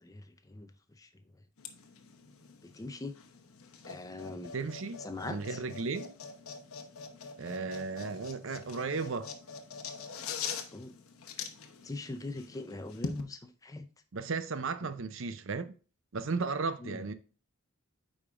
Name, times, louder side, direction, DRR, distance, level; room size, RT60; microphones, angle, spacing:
voice 1, 0.0-0.7 1.0-1.1 2.7-3.1 3.8-4.5 5.0-5.6 10.7-10.9 11.8-13.8 16.8-17.0, left 2 dB, 15° left, 0.5 m, -41 dB
sound 1, 1.6-13.2, left 5 dB, 85° left, 0.9 m, -44 dB
voice 2, 4.5-5.0 5.3-6.1 7.4-9.3 14.1-15.7 16.1-17.1, right 4 dB, 65° right, 0.6 m, -35 dB
8.6 x 5.0 x 2.5 m
head